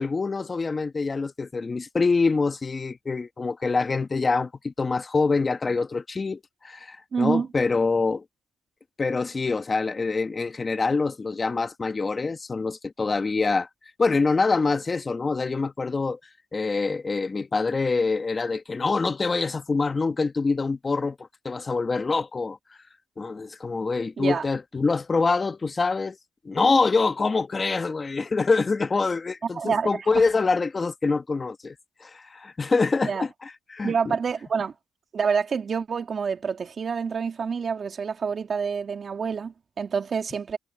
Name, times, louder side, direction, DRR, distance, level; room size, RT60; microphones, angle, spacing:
voice 1, 0.0-8.2 9.0-13.7 14.0-16.2 16.5-21.2 21.4-22.6 23.2-26.2 26.4-31.7 32.0-34.2, left 4 dB, 30° left, 1.4 m, -25 dB
voice 2, 7.1-7.5 24.2-24.5 29.5-30.2 33.0-33.2 33.8-34.7 35.1-40.6, right 6 dB, 45° right, 2.6 m, -27 dB
cardioid pair, 90°, 0 cm